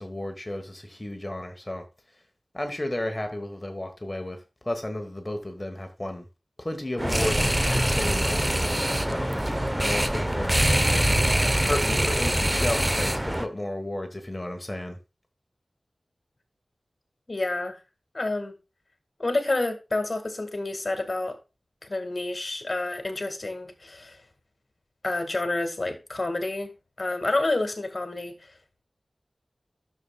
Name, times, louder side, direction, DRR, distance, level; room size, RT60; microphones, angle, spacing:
voice 1, 0.0-1.8 2.1-2.2 2.5-6.3 6.6-8.4 9.0-9.3 9.7-10.6 11.6-15.0, left 1 dB, 25° left, 1.3 m, -33 dB
sound 1, 7.0-13.5, right 1 dB, 15° right, 0.7 m, -24 dB
voice 2, 17.3-17.8 18.1-18.5 19.2-21.4 21.9-24.2 25.0-26.7 27.0-28.5, left 2 dB, 50° left, 1.8 m, -29 dB
10.5 x 6.9 x 2.3 m
wide cardioid pair, 60°, 0 cm